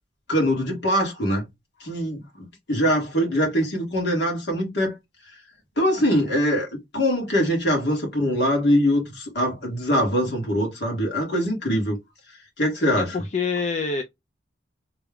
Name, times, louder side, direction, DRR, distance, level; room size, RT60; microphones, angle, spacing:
voice 1, 0.3-1.5 1.8-2.2 2.7-4.9 5.8-6.7 6.9-12.0 12.6-13.2, equal, 65° left, 1.8 m, -22 dB
voice 2, 13.0-14.0, left 4 dB, 40° left, 0.4 m, -26 dB
3.4 x 2.3 x 3.5 m
head